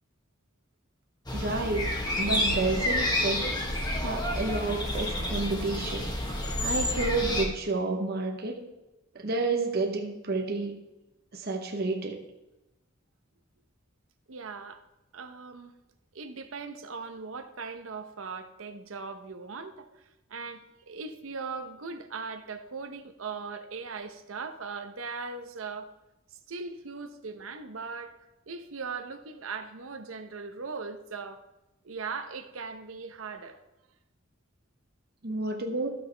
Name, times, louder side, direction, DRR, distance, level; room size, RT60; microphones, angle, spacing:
sound 1, 1.3-7.5, left 1 dB, 20° left, 1.3 m, -29 dB
voice 1, 1.3-3.5 4.0-6.1 6.6-8.7 9.1-10.8 11.3-12.2 35.2-35.9, right 3 dB, 50° right, 0.9 m, -30 dB
voice 2, 14.3-14.8 15.1-15.7 16.1-19.9 20.3-25.9 26.5-28.1 28.5-31.4 31.8-33.6, right 4 dB, 85° right, 0.8 m, -39 dB
14.0 x 5.9 x 3.3 m
head